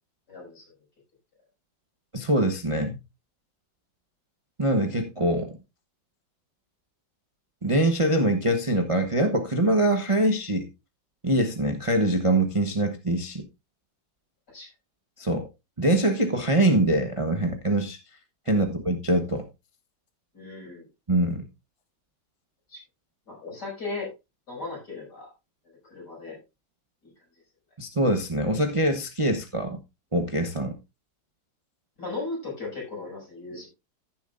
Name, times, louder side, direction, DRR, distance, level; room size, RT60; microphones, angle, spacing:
voice 1, 0.3-0.6 14.5-14.7 18.5-18.7 20.3-20.9 22.7-22.8 23.3-24.1 24.5-25.3 25.9-26.4 27.0-27.1 32.0-33.7, left 3 dB, 60° left, 6.8 m, -36 dB
voice 2, 2.1-3.0 4.6-5.6 7.6-10.7 11.2-13.4 15.2-15.5 15.8-18.0 18.5-19.4 21.1-21.5 27.8-29.8 30.1-30.8, right 1 dB, 25° right, 0.8 m, -24 dB
15.0 x 7.2 x 2.5 m
omnidirectional pair, 2.0 m